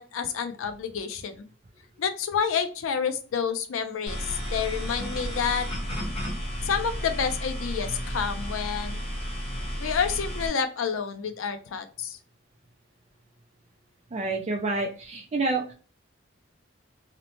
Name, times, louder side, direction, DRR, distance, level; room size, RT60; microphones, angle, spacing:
voice 1, 0.0-1.4 2.0-5.7 6.6-9.0 9.8-12.2, left 6 dB, 85° left, 9 dB, 0.4 m, -29 dB
sound 1, 4.1-10.5, equal, 30° left, 0.9 m, -32 dB
voice 2, 14.1-15.7, right 3 dB, 35° right, 1 dB, 0.3 m, -28 dB
2.8 x 2.1 x 2.9 m, 0.38 s
head